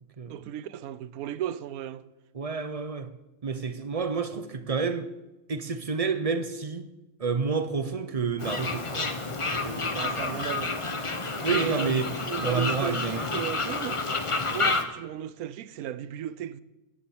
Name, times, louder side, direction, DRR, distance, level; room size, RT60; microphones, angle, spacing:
voice 1, 0.3-2.0 9.9-10.8 11.5-12.0 12.3-14.0 14.5-16.6, right 11 dB, 80° right, 1.1 m, -35 dB
voice 2, 2.3-3.1 3.4-5.1 5.5-6.9 7.2-9.1 9.5-10.0 11.4-12.1 12.4-13.3, right 5 dB, 45° right, 0.5 m, -29 dB
Fowl, 8.4-14.8, left 3 dB, 25° left, 0.7 m, -29 dB
9.9 x 9.8 x 7.8 m
omnidirectional pair, 1.6 m